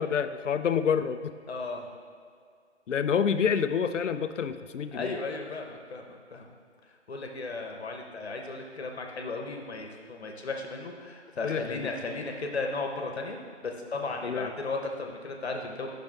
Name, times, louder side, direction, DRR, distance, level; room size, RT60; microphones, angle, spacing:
voice 1, 0.0-1.3 2.9-5.2 11.4-11.9 14.2-14.5, left 7 dB, 85° left, 11 dB, 0.5 m, -28 dB
voice 2, 1.5-1.9 4.9-6.5 7.1-15.9, left 3 dB, 60° left, 2 dB, 1.0 m, -35 dB
10.0 x 5.8 x 2.5 m, 2.1 s
figure-of-eight pair, 155°, 36 cm